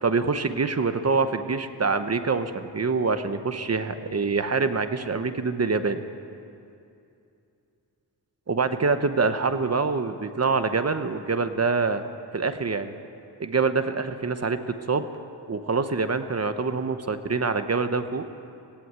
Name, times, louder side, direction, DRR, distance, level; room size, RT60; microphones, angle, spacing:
voice 1, 0.0-6.0 8.5-12.0 12.3-12.9 13.4-15.1 15.5-18.2, right 4 dB, 40° right, 9 dB, 0.9 m, -25 dB
17.5 x 17.0 x 9.6 m, 2.6 s
wide cardioid pair, 170°, 41 cm